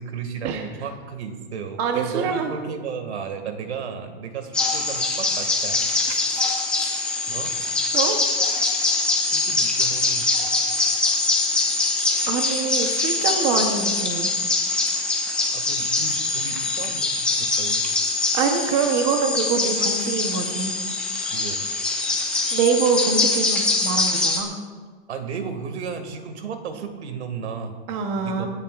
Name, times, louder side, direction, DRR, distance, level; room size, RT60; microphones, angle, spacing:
voice 1, 0.0-6.5 7.3-7.5 9.3-10.3 15.5-17.8 21.3-21.6 25.1-27.7 28.2-28.5, right 6 dB, 85° right, 6 dB, 2.2 m, -34 dB
voice 2, 1.8-2.5 7.9-8.2 12.3-14.3 18.3-20.7 22.5-24.5 27.9-28.5, right 5 dB, 25° right, 4 dB, 1.0 m, -24 dB
sound 1, 4.5-24.4, left 3 dB, 5° left, 0.7 m, -23 dB
27.5 x 10.0 x 2.5 m, 1.5 s
supercardioid pair, 175°, 32 cm